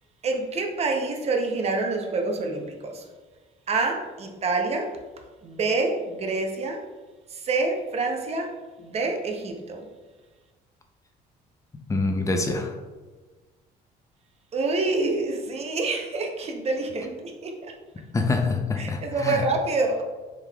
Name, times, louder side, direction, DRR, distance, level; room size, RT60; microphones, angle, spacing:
voice 1, 0.2-3.0 3.7-4.9 5.4-6.8 7.3-8.5 8.8-9.8 14.5-17.6 18.8-20.0, right 3 dB, 40° right, 3 dB, 0.7 m, -27 dB
voice 2, 11.9-12.7 18.1-19.4, left 3 dB, 20° left, 3 dB, 0.5 m, -25 dB
4.7 x 3.5 x 2.3 m, 1.3 s
cardioid pair, 110°, 17 cm